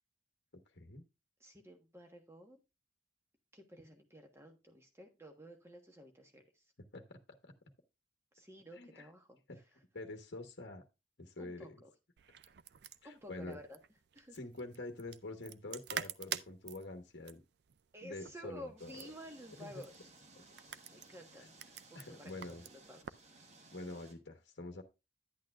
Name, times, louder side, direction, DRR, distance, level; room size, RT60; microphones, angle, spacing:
voice 1, 1.4-2.6 3.5-6.6 8.3-9.4 11.4-11.9 13.0-13.8 14.1-14.4 17.9-20.1 20.9-21.5 21.9-23.7, equal, 15° right, 4 dB, 1.2 m, -53 dB
voice 2, 6.9-7.5 8.8-9.1 9.5-9.6 9.9-10.8 11.2-11.7 13.0-13.6 14.3-17.4 18.0-19.1 19.6-19.8 21.9-22.6 23.7-24.8, left 2 dB, 55° left, 5 dB, 1.1 m, -46 dB
sound 1, 12.2-23.3, right 9 dB, 55° right, 0.4 m, -48 dB
sound 2, 18.8-24.1, right 3 dB, 35° right, 1.2 m, -60 dB
10.5 x 8.4 x 2.3 m, 0.26 s
head